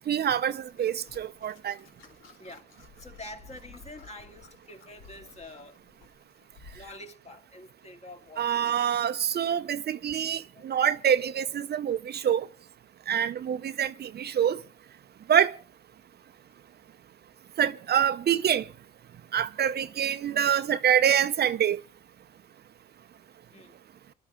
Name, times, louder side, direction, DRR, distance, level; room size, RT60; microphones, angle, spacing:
voice 1, 0.0-1.8 8.4-12.5 13.1-14.6 15.3-15.5 17.6-18.6 19.3-21.8, right 9 dB, 50° right, 0.7 m, -26 dB
sound 1, 0.6-6.9, left 4 dB, 75° left, 2.8 m, -54 dB
voice 2, 3.0-5.8 6.7-8.7 10.5-10.6 20.7-20.8 23.5-23.8, left 1 dB, 30° left, 2.5 m, -46 dB
23.0 x 12.0 x 3.7 m
supercardioid pair, 75°, 20 cm